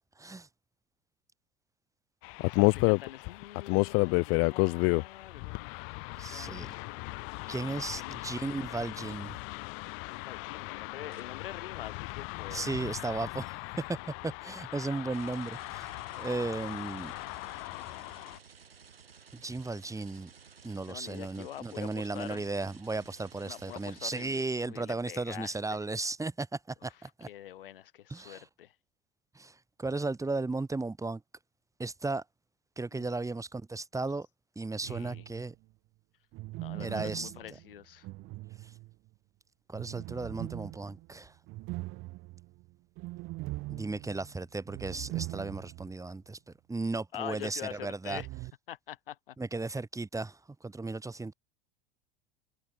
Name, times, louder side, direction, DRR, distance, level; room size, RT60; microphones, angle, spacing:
voice 1, 0.2-0.5 6.2-6.7 7.5-9.4 12.5-13.6 13.9-15.9 16.2-17.1 19.3-20.3 20.6-27.3 28.1-28.4 29.3-31.2 31.8-32.2 32.8-34.3 34.6-35.5 36.8-37.3 38.6-38.7 39.7-41.3 43.7-46.4 46.7-48.2 49.4-51.3, right 3 dB, 10° right, 3.9 m, -35 dB
sound 1, 2.2-18.4, left 32 dB, 50° left, 1.4 m, -33 dB
voice 2, 2.4-7.2 8.0-8.4 9.1-9.2 10.0-12.8 20.8-22.5 23.4-25.8 26.8-28.8 32.9-33.1 34.8-35.2 36.5-38.1 47.1-48.3 48.7-49.4, left 12 dB, 70° left, 2.7 m, -45 dB
sound 2, 11.1-12.1 15.1-24.9, right 6 dB, 80° right, 5.6 m, -56 dB
sound 3, 34.8-35.6 36.3-39.1 39.7-46.0 46.2-46.3 48.1-48.5, right 20 dB, 45° right, 4.3 m, -41 dB
figure-of-eight pair, 80°, 29 cm